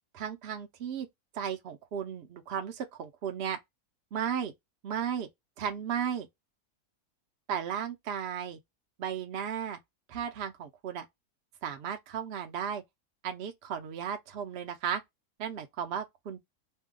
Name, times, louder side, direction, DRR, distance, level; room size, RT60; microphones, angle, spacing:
voice 1, 0.1-1.1 1.3-3.6 4.1-4.5 4.8-5.3 5.6-6.3 7.5-8.6 9.0-9.8 10.1-11.1 11.6-12.8 13.2-15.0 15.4-16.4, right 8 dB, 65° right, 0.6 m, -35 dB
2.7 x 2.2 x 3.6 m
omnidirectional pair, 1.7 m